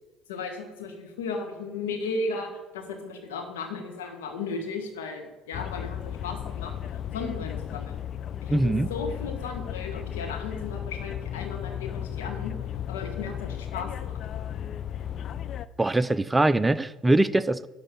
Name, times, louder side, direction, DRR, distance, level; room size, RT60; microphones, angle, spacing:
voice 1, 0.3-6.7 7.1-8.0 8.4-12.5 12.9-14.2, left 4 dB, 85° left, 3 dB, 1.6 m, -35 dB
sound 1, 5.5-15.7, left 10 dB, 50° left, 0.4 m, -35 dB
voice 2, 8.5-8.9 15.8-17.7, right 2 dB, 15° right, 14 dB, 0.5 m, -22 dB
11.5 x 4.1 x 7.1 m, 1.2 s
hypercardioid pair, 65°, 0 cm